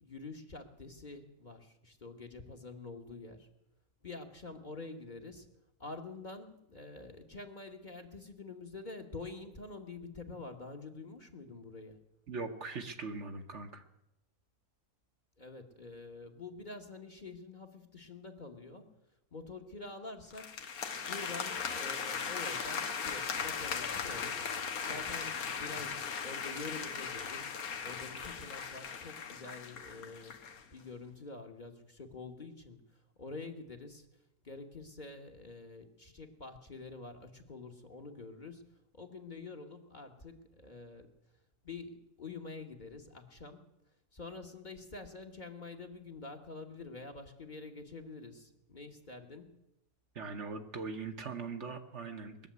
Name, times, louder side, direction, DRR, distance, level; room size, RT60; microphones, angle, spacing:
voice 1, 0.0-3.5 4.0-5.5 5.8-12.0 15.4-18.9 19.3-20.6 21.1-27.5 27.8-30.4 30.7-32.8 33.2-34.1 34.4-38.7 38.9-41.1 41.6-43.6 44.1-49.6, left 3 dB, 35° left, 3 dB, 1.4 m, -47 dB
voice 2, 12.3-13.8 50.1-52.5, right 4 dB, 55° right, 5 dB, 1.3 m, -41 dB
sound 1, 20.3-30.6, left 6 dB, 80° left, 1.6 m, -38 dB
20.5 x 7.1 x 9.4 m, 0.89 s
omnidirectional pair, 1.5 m